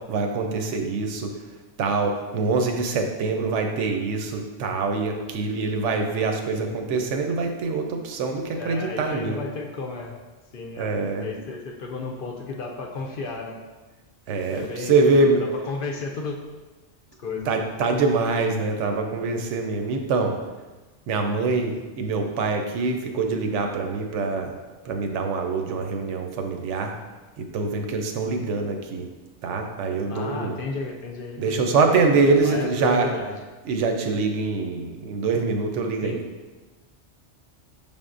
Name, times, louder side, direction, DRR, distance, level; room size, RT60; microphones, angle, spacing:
voice 1, 0.1-1.3 1.8-9.4 10.8-11.3 14.3-15.4 17.5-20.4 21.1-24.5 24.8-27.0 27.4-29.1 29.4-30.6 31.4-33.1 33.7-36.2, right 3 dB, 85° right, 4 dB, 0.9 m, -24 dB
voice 2, 8.5-10.1 10.5-13.6 14.5-16.4 17.2-17.5 30.1-33.4 36.0-36.2, left 3 dB, 60° left, 1 dB, 0.6 m, -33 dB
5.5 x 3.5 x 2.5 m, 1.2 s
omnidirectional pair, 1.2 m